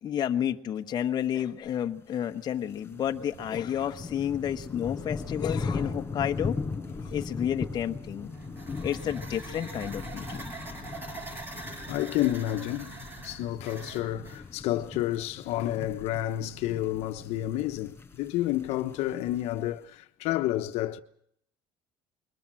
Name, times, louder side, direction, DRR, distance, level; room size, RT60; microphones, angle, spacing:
voice 1, 0.0-6.6 7.0-8.3 8.8-10.4 15.5-15.7, left 10 dB, 40° left, 1.1 m, -31 dB
sound 1, 2.2-19.8, left 4 dB, 20° left, 5.4 m, -39 dB
sound 2, 2.9-14.3, right 8 dB, 65° right, 1.8 m, -52 dB
sound 3, 8.2-14.4, right 2 dB, 20° right, 6.5 m, -44 dB
voice 2, 11.8-12.9 13.2-21.0, left 14 dB, 70° left, 1.1 m, -30 dB
22.5 x 20.0 x 7.7 m
cardioid pair, 125°, 11 cm